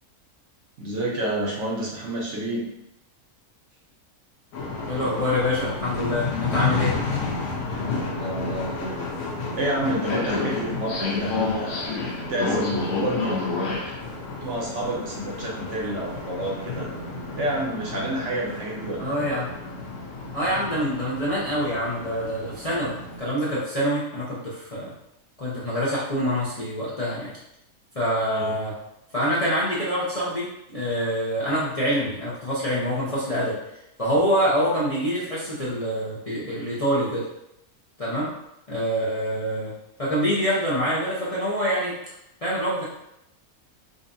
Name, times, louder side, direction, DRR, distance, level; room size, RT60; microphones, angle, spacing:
voice 1, 0.8-2.7 7.7-9.0 9.5-12.0 12.3-13.4 14.4-17.0 17.4-19.2 28.3-28.6, right 1 dB, 60° right, -3 dB, 1.1 m, -29 dB
sound 1, 4.5-23.2, left 4 dB, 85° left, 1.2 m, -30 dB
voice 2, 4.9-6.9 19.0-19.5 20.3-24.9 25.4-27.3 27.9-28.7 29.1-33.6 34.0-37.2 38.0-38.3 38.7-39.7 40.0-41.9 42.4-42.8, equal, 35° left, -8 dB, 0.6 m, -25 dB
5.1 x 2.3 x 2.6 m, 0.82 s
omnidirectional pair, 1.5 m